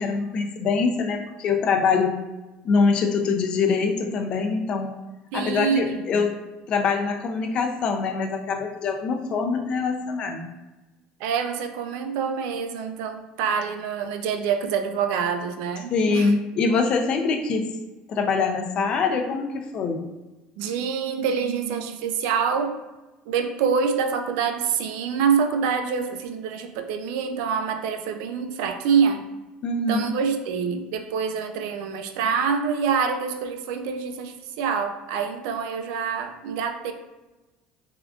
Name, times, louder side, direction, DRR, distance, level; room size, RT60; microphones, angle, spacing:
voice 1, 0.0-2.2 2.6-4.9 5.3-6.3 6.7-10.5 15.9-17.7 18.1-20.0 29.6-30.1, left 4 dB, 40° left, 4 dB, 0.4 m, -24 dB
voice 2, 5.3-6.2 11.2-16.3 20.6-22.8 23.3-29.2 29.8-36.9, right 6 dB, 80° right, 6 dB, 0.3 m, -26 dB
3.6 x 2.3 x 2.3 m, 1.1 s
cardioid pair, 150°, 3 cm